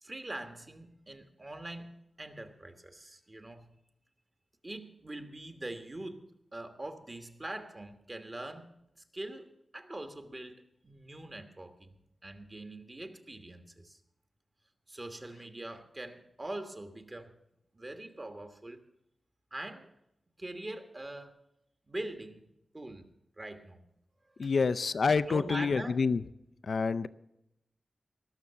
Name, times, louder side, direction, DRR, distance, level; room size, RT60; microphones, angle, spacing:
voice 1, 0.0-1.9 2.2-3.7 4.6-8.7 9.1-14.0 14.9-17.3 17.7-18.8 19.5-19.9 20.4-21.4 21.9-22.4 22.7-23.1 23.4-23.8 24.3-24.5 25.2-26.0, right 1 dB, 25° right, 7 dB, 1.3 m, -43 dB
voice 2, 24.4-26.2 26.6-27.1, left 4 dB, 60° left, 13 dB, 0.4 m, -27 dB
19.5 x 6.5 x 6.9 m, 0.84 s
wide cardioid pair, 125°, 0 cm